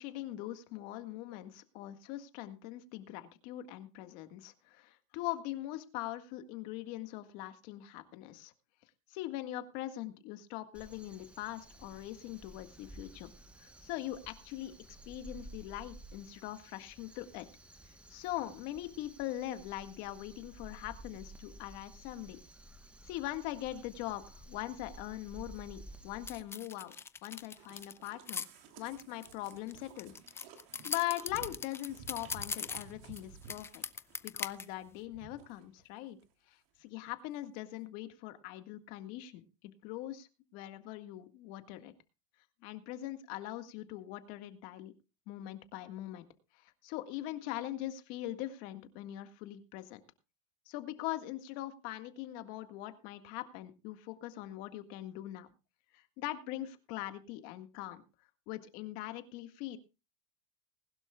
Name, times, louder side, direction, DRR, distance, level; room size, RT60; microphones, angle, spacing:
voice 1, 0.0-8.5 9.1-13.3 13.6-14.7 15.1-17.5 17.9-22.4 23.0-26.9 27.2-28.5 28.8-30.5 30.8-33.8 34.2-36.2 36.5-41.9 42.6-44.9 45.3-46.3 46.5-50.0 50.7-55.5 55.9-58.0 58.5-59.8, left 14 dB, 60° left, 9 dB, 1.7 m, -42 dB
Crow, 10.7-26.4, right 1 dB, 5° right, 1.1 m, -53 dB
sound 1, 26.3-28.5 29.0-33.2 33.5-34.7, left 5 dB, 15° left, 0.6 m, -40 dB
sound 2, 27.5-35.9 36.2-36.3 36.8-36.9 37.1-37.2, right 5 dB, 60° right, 3.0 m, -55 dB
20.5 x 11.5 x 2.3 m, 0.29 s
supercardioid pair, 135°, 16 cm